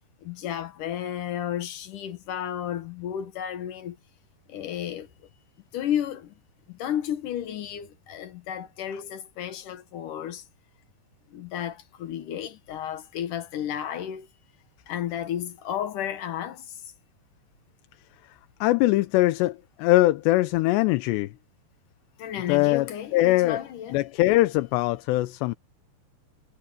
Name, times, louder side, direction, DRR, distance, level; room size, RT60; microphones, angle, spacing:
voice 1, 0.2-4.0 4.5-5.1 5.7-6.3 6.7-10.4 11.3-14.3 14.9-16.8 22.2-24.0, left 10 dB, 65° left, 2.2 m, -32 dB
voice 2, 18.6-21.3 22.5-23.6 23.9-25.6, left 17 dB, 80° left, 2.8 m, -22 dB
omnidirectional pair, 5.1 m